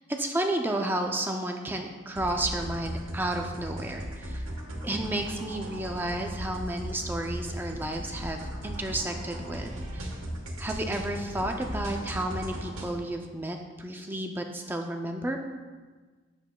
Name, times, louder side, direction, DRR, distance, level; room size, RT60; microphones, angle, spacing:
voice 1, 0.0-4.4 4.8-10.1 10.6-15.4, right 1 dB, 10° right, 3 dB, 0.3 m, -32 dB
sound 1, 2.2-12.9, equal, 80° right, 1.2 m, -37 dB
8.9 x 7.1 x 2.2 m, 1.4 s
head